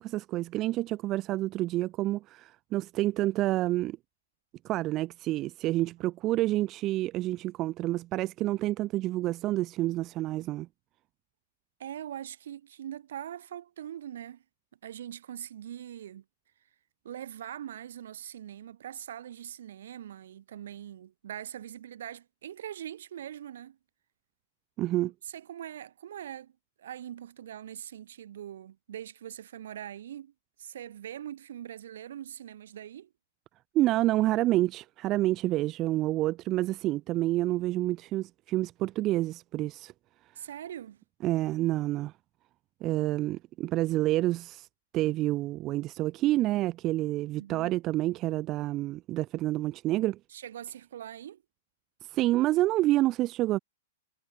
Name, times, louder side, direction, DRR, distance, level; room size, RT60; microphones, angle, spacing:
voice 1, 0.0-4.0 4.6-10.7 24.8-25.1 33.7-39.9 41.2-42.1 42.8-44.7 44.9-50.2 52.1-53.6, right 16 dB, 35° right, 0.4 m, -28 dB
voice 2, 11.8-14.4 14.8-16.2 17.0-23.8 25.2-26.5 26.8-30.3 30.6-33.1 40.4-41.0 47.3-47.8 50.3-51.4, right 10 dB, 65° right, 2.1 m, -42 dB
figure-of-eight pair, 110°, 0 cm